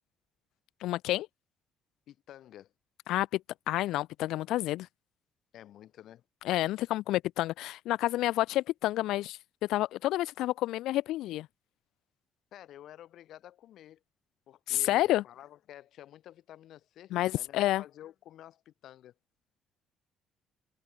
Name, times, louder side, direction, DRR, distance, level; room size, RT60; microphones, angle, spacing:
voice 1, 0.8-1.3 3.1-3.4 3.7-4.9 6.4-9.4 9.7-11.5 14.7-15.2 17.1-17.8, left 15 dB, 85° left, 1.2 m, -29 dB
voice 2, 2.1-2.7 5.5-6.2 12.5-14.0 14.5-19.1, left 12 dB, 65° left, 3.4 m, -51 dB
cardioid pair, 135°, 0 cm